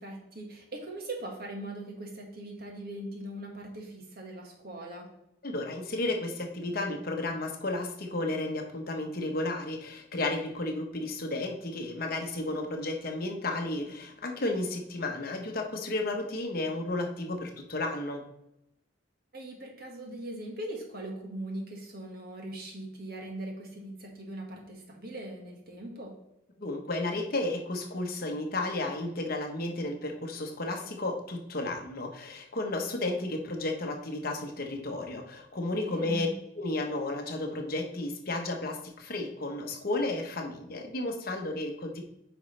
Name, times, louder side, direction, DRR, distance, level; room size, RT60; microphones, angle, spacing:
voice 1, 0.0-5.0 19.3-26.1 35.8-36.3, right 1 dB, 50° right, 0 dB, 1.6 m, -40 dB
voice 2, 5.4-18.2 26.6-36.3 36.6-42.0, left 2 dB, 50° left, 3 dB, 1.0 m, -33 dB
9.1 x 5.1 x 3.2 m, 0.84 s
head